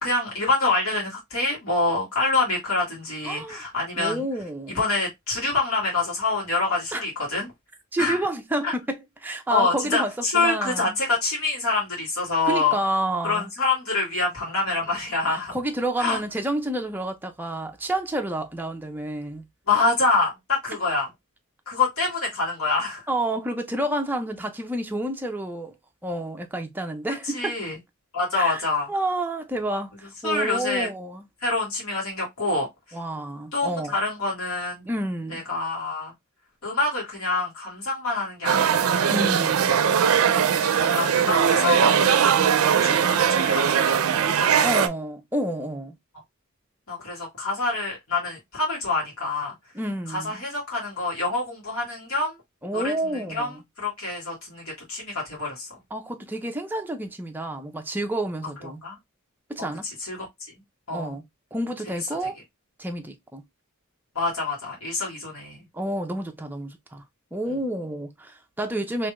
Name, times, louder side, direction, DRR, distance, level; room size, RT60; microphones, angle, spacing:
voice 1, 0.0-4.2 4.7-7.5 8.0-8.2 8.6-8.7 9.5-12.8 13.2-15.6 16.0-16.2 19.7-21.1 21.7-23.1 27.3-27.8 28.1-28.9 30.2-30.9 31.4-33.0 33.5-34.9 35.3-36.1 36.6-39.1 40.3-42.4 42.7-44.6 46.9-49.5 50.1-52.3 52.7-53.5 53.8-55.7 58.6-59.0 59.6-60.2 60.9-61.1 62.2-62.3 64.2-65.7, left 3 dB, 75° left, 1.8 m, -26 dB
voice 2, 3.2-3.6 4.0-4.8 6.9-7.0 7.9-11.0 12.5-13.5 15.3-19.4 23.1-25.7 26.0-27.5 28.4-28.6 28.9-31.2 32.9-34.0 34.9-35.4 39.1-39.7 42.9-43.3 44.6-46.0 49.7-50.4 52.6-53.6 55.9-58.8 59.5-59.9 60.9-61.2 61.5-62.4 62.8-63.4 65.7-67.0 67.3-69.1, right 1 dB, 10° right, 0.4 m, -29 dB
sound 1, 38.4-44.9, right 7 dB, 80° right, 0.4 m, -20 dB
3.2 x 3.0 x 2.2 m
head